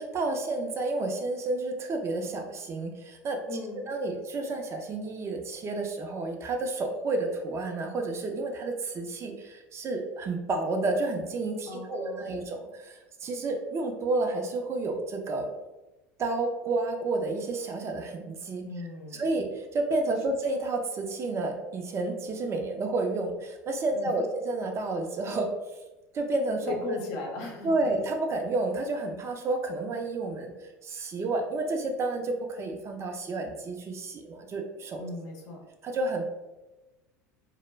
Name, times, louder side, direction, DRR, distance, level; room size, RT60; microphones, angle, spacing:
voice 1, 0.0-3.4 3.9-15.5 16.2-25.5 26.1-26.7 27.6-35.1 35.8-36.2, right 2 dB, 35° right, 3 dB, 0.4 m, -30 dB
voice 2, 3.5-3.9 11.7-12.4 18.6-19.3 23.9-24.2 26.7-27.8 35.0-35.6, left 3 dB, 60° left, 0 dB, 0.6 m, -37 dB
2.1 x 2.0 x 3.2 m, 1.1 s
hypercardioid pair, 75°, 8 cm